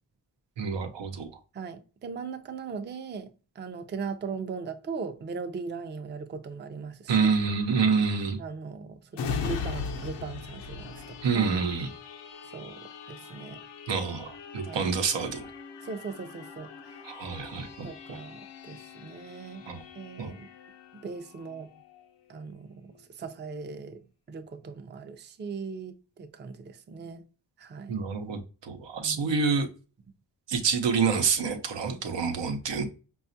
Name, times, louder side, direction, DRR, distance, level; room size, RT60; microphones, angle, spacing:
voice 1, 0.6-1.3 7.1-8.4 11.2-11.9 13.9-15.5 17.0-18.2 19.7-19.8 20.2-20.3 27.9-29.7 30.5-32.8, right 5 dB, 90° right, 0.8 m, -27 dB
voice 2, 1.5-7.3 8.4-11.5 12.5-13.6 14.6-14.9 15.8-17.0 17.8-19.6 19.9-20.5 20.9-21.7 22.3-27.2 27.6-28.0 29.0-29.4, right 5 dB, 25° right, 0.4 m, -39 dB
sound 1, 9.1-22.5 22.9-23.0, left 5 dB, 75° left, 0.7 m, -40 dB
4.9 x 2.4 x 2.6 m
cardioid pair, 80°, 42 cm